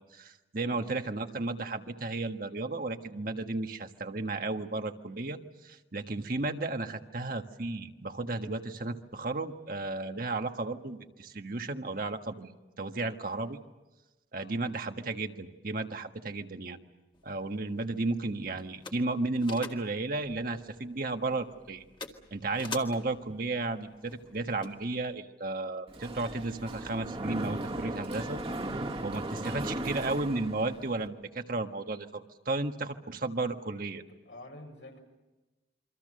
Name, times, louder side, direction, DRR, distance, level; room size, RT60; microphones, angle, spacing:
voice 1, 0.1-13.6 14.3-16.8 17.2-21.8 22.3-28.4 29.0-34.0, right 2 dB, 55° right, 6 dB, 1.5 m, -34 dB
voice 2, 0.6-1.0 14.3-14.8 34.1-35.0, left 1 dB, 85° left, 3 dB, 6.8 m, -50 dB
sound 1, 17.1-25.2, left 3 dB, 30° left, 2.0 m, -48 dB
Mechanisms, 25.9-31.1, right 1 dB, 30° right, 1.9 m, -37 dB
28.0 x 25.0 x 6.7 m, 1.1 s
head